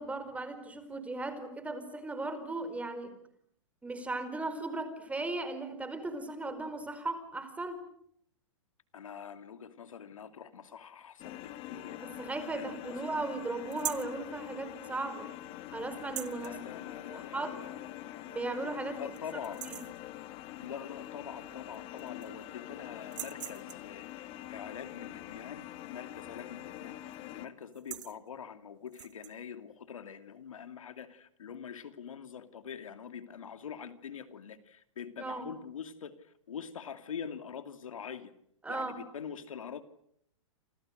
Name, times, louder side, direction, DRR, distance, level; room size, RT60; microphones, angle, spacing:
voice 1, 0.0-3.1 3.8-7.8 12.0-15.3 15.7-16.6 17.1-17.6 18.2-19.0 19.6-19.8 35.2-35.5 38.6-39.0, right 2 dB, 10° right, 11 dB, 4.7 m, -37 dB
voice 2, 8.9-12.0 12.5-12.9 16.4-17.9 19.0-19.6 20.6-38.3 38.7-39.8, left 7 dB, 85° left, 10 dB, 2.7 m, -44 dB
sound 1, 11.2-27.5, left 14 dB, 35° left, 2.2 m, -45 dB
sound 2, 13.7-14.2 16.0-16.5 17.9-18.0 18.5-18.6 18.9-19.2 19.4-20.0 21.4-21.5 21.7-22.4 23.0-23.9 26.3-26.6 26.9-27.2 27.6-28.2 28.9-29.3, right 13 dB, 65° right, 1.5 m, -41 dB
29.0 x 27.5 x 6.6 m, 0.69 s
hypercardioid pair, 135°, 17 cm